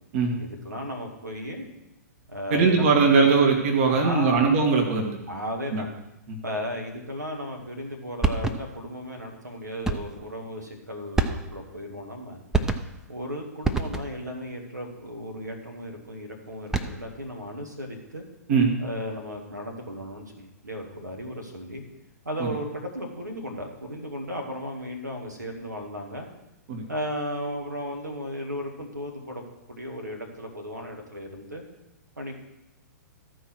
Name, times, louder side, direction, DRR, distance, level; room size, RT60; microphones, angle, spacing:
voice 1, 0.4-1.7 2.3-3.4 3.8-4.5 5.3-5.9 6.4-12.4 13.1-18.2 18.8-21.8 22.3-26.3 26.9-31.6 32.2-32.4, equal, 80° right, 2 dB, 1.8 m, -35 dB
voice 2, 2.5-5.2 5.7-5.8 18.5-18.7 22.4-22.5 26.7-26.8, right 4 dB, 45° right, 2 dB, 1.6 m, -20 dB
sound 1, 8.2-8.9 9.8-10.3 11.1-11.8 12.5-13.1 13.6-14.3 16.5-17.2, right 4 dB, 5° right, 0.5 m, -27 dB
13.5 x 4.7 x 6.1 m, 0.90 s
figure-of-eight pair, 110°, 9 cm